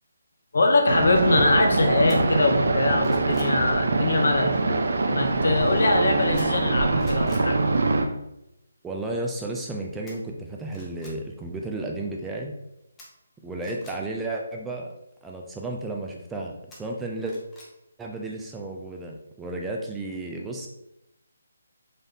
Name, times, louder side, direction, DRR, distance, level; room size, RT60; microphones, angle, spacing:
voice 1, 0.5-4.6 5.1-7.6, left 3 dB, 65° left, 4 dB, 0.7 m, -23 dB
sound 1, 0.9-8.0, right 3 dB, 70° right, 0.5 m, -23 dB
sound 2, 2.1-2.2 2.7-3.6 6.4-6.7 7.0-7.5 10.1-10.2 10.7-11.2 13.0-14.0 16.7-17.7 18.1-18.2, left 1 dB, 10° left, 0.8 m, -48 dB
voice 2, 8.8-12.5 13.4-14.9 15.2-16.5 16.8-17.4 18.0-20.7, right 2 dB, 5° right, 0 dB, 0.3 m, -33 dB
4.0 x 2.6 x 3.4 m, 0.86 s
figure-of-eight pair, 155°, 0 cm